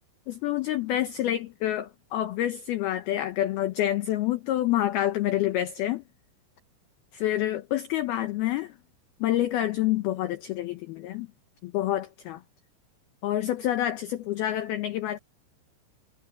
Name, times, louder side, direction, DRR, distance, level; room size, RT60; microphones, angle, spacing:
voice 1, 0.3-6.0 7.1-8.8 9.2-11.3 11.6-12.4 13.2-15.2, left 13 dB, 85° left, 2.2 m, -27 dB
omnidirectional pair, 5.7 m